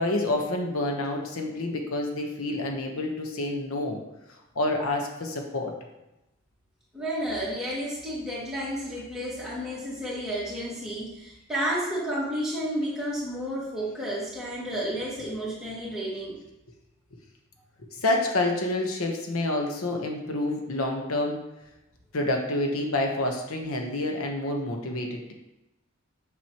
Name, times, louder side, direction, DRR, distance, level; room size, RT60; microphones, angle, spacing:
voice 1, 0.0-4.0 4.5-5.7 17.8-21.4 22.1-25.3, left 2 dB, 85° left, 2 dB, 1.0 m, -28 dB
voice 2, 6.9-16.4, equal, 5° right, -8 dB, 2.1 m, -31 dB
7.4 x 6.1 x 2.9 m, 0.94 s
head